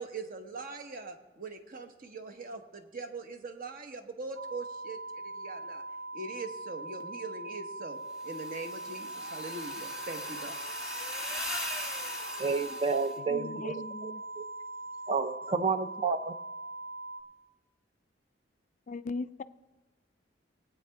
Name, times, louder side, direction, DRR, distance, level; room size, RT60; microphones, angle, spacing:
voice 1, 0.0-5.8 6.1-10.5, right 3 dB, 50° right, 6 dB, 1.1 m, -42 dB
sound 1, 4.4-17.2, right 2 dB, 80° right, 0.9 m, -41 dB
sound 2, 8.2-13.1, left 1 dB, 5° right, 1.2 m, -39 dB
voice 2, 12.4-14.4 15.1-16.3, right 4 dB, 30° right, 11 dB, 0.5 m, -31 dB
voice 3, 13.3-14.2 18.9-19.4, left 3 dB, 40° left, 13 dB, 0.4 m, -38 dB
19.0 x 8.7 x 3.5 m, 1.1 s
head